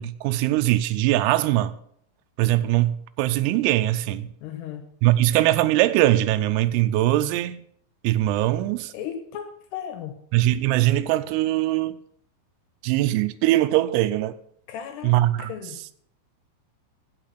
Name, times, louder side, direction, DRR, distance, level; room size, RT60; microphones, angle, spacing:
voice 1, 0.0-1.7 2.4-4.3 5.0-7.6 8.0-8.9 10.3-12.0 12.8-14.4 15.0-15.5, right 15 dB, 85° right, 3.3 m, -21 dB
voice 2, 4.4-4.8 8.9-10.1 14.7-15.1 15.4-15.8, left 9 dB, 75° left, 2.5 m, -35 dB
15.0 x 6.0 x 5.8 m
omnidirectional pair, 5.9 m